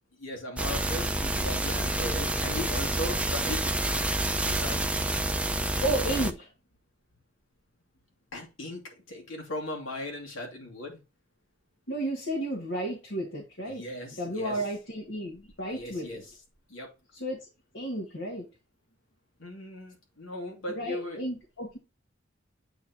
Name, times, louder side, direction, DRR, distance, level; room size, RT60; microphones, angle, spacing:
voice 1, 0.2-3.8 4.4-5.0 8.3-11.0 13.6-14.7 15.7-16.4 16.7-16.9 19.4-21.2, left 1 dB, 85° left, 2.7 m, -38 dB
sound 1, 0.6-6.3, right 1 dB, 5° right, 0.5 m, -28 dB
voice 2, 5.8-6.5 11.9-13.8 14.2-16.2 17.1-17.5 17.7-18.5 20.7-21.8, right 1 dB, 65° left, 1.9 m, -32 dB
8.3 x 4.6 x 3.0 m
head